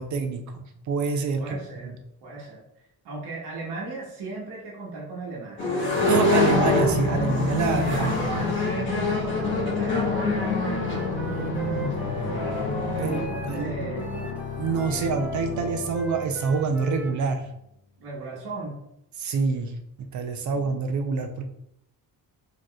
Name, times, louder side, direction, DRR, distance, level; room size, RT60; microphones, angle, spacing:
voice 1, 0.0-1.6 1.8-1.9 6.1-8.3 13.0-13.2 13.5-14.3 14.6-17.4 19.2-21.5, right 4 dB, 50° right, 6 dB, 0.6 m, -27 dB
voice 2, 1.4-1.9 2.2-2.6 3.0-5.7 7.6-10.3 11.5-11.7 12.9-14.1 14.9-15.1 18.0-18.8, right 3 dB, 85° right, -5 dB, 1.3 m, -36 dB
sound 1, 5.6-13.3, left 2 dB, 30° left, 1.5 m, -25 dB
sound 2, 6.0-17.4, left 6 dB, 90° left, 0.6 m, -35 dB
Wind instrument woodwind instrument, 10.7-13.7 14.0-17.2, right 2 dB, 5° right, 0.3 m, -38 dB
4.8 x 3.0 x 2.3 m, 0.78 s
cardioid pair, 125°, 39 cm